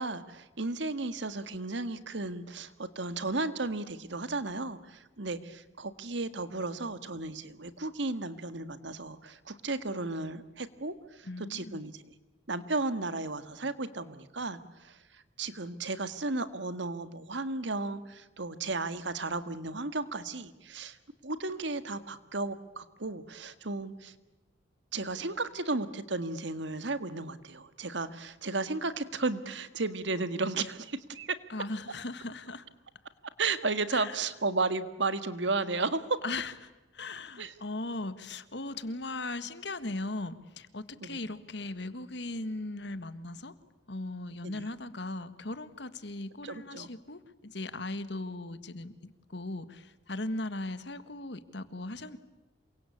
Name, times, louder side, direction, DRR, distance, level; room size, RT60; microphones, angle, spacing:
voice 1, 0.0-12.1 12.5-21.0 21.2-24.1 24.9-31.4 33.4-36.2 37.4-37.5 41.0-41.2 44.4-44.6 46.4-46.9, right 3 dB, 70° right, 12 dB, 1.7 m, -34 dB
voice 2, 11.3-11.8 31.5-32.6 33.9-34.1 36.2-36.5 36.9-43.5 43.9-48.9 49.3-52.2, left 2 dB, 60° left, 13 dB, 1.7 m, -38 dB
28.0 x 24.0 x 8.5 m, 1.1 s
head